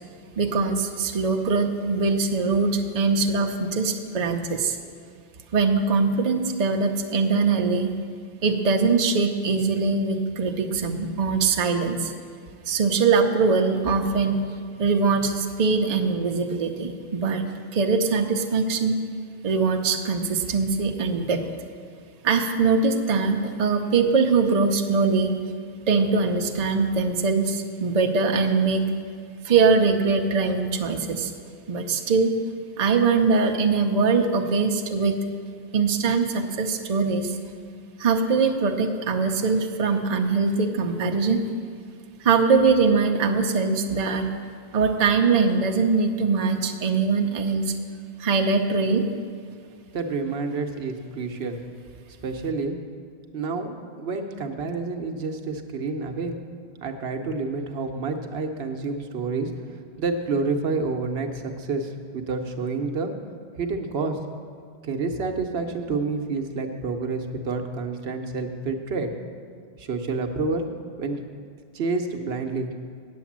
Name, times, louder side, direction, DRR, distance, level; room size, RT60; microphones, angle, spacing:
voice 1, 0.4-4.8 5.5-7.9 8.4-12.1 12.7-14.4 14.8-17.4 17.7-18.9 19.4-21.4 22.2-25.4 25.9-28.9 29.4-31.3 31.7-32.3 32.8-35.2 35.7-37.4 38.0-41.4 42.2-44.3 44.7-47.7 48.2-49.0, right 4 dB, 45° right, 4 dB, 0.7 m, -22 dB
voice 2, 49.9-51.6 52.2-52.8 53.3-56.3 56.8-59.5 60.0-63.1 63.6-64.2 64.8-69.1 69.8-70.7 71.0-71.2 71.7-72.7, right 3 dB, 75° right, 4 dB, 1.0 m, -28 dB
8.4 x 7.9 x 7.3 m, 2.2 s
omnidirectional pair, 1.1 m